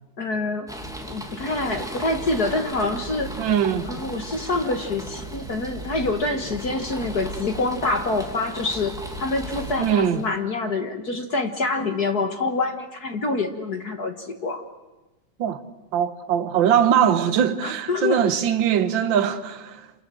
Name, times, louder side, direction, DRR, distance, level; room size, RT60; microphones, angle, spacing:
voice 1, 0.2-0.7 1.1-3.3 3.8-8.9 9.2-14.6 17.6-18.2, left 3 dB, 40° left, 1.6 m, -26 dB
Rain on Interior windows with rumbling thunder, 0.7-10.3, right 1 dB, ahead, 2.1 m, -36 dB
voice 2, 3.4-3.9 9.8-10.2 15.4-15.6 15.9-19.9, right 9 dB, 50° right, 1.5 m, -21 dB
27.5 x 27.5 x 7.7 m
omnidirectional pair, 3.4 m